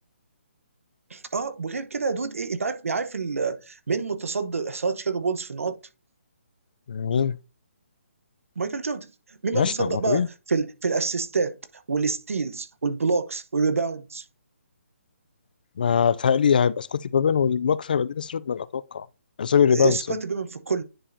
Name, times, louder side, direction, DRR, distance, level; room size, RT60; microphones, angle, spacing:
voice 1, 1.1-5.8 8.6-9.1 9.4-10.2 10.5-11.6 11.9-14.2 19.7-20.8, right 4 dB, 85° right, 1.0 m, -27 dB
voice 2, 6.9-7.4 9.5-10.3 15.8-19.1 19.4-20.0, left 7 dB, 40° left, 0.3 m, -22 dB
10.0 x 4.8 x 2.7 m
hypercardioid pair, 170°, 7 cm